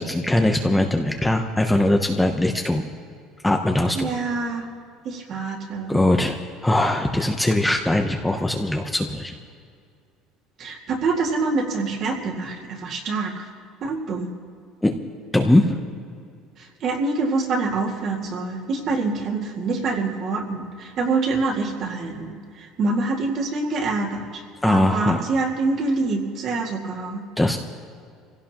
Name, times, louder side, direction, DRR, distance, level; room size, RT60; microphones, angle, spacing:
voice 1, 0.0-2.8 3.4-4.1 5.9-9.3 14.8-14.9 15.3-15.8 24.6-25.2 27.4-27.6, left 1 dB, 5° left, 3 dB, 0.8 m, -21 dB
voice 2, 4.0-4.7 5.0-6.0 10.6-13.5 13.8-14.3 16.6-27.2, right 3 dB, 40° right, 1 dB, 2.1 m, -26 dB
25.5 x 16.5 x 3.0 m, 2.3 s
cardioid pair, 155°, 0 cm